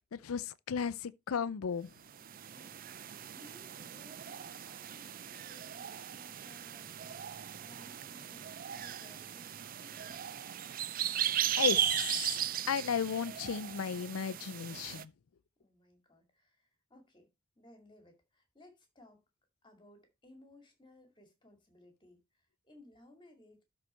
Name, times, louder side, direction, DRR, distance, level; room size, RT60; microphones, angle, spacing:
voice 1, 0.1-1.9 11.6-12.4 12.7-15.1, left 7 dB, 80° left, 0.5 m, -34 dB
sound 1, 2.1-15.0, right 10 dB, 40° right, 0.5 m, -37 dB
voice 2, 2.5-3.0 3.3-10.5 15.6-17.3 17.6-19.2 19.6-23.6, left 1 dB, 20° left, 2.3 m, -60 dB
12.5 x 4.2 x 4.4 m
head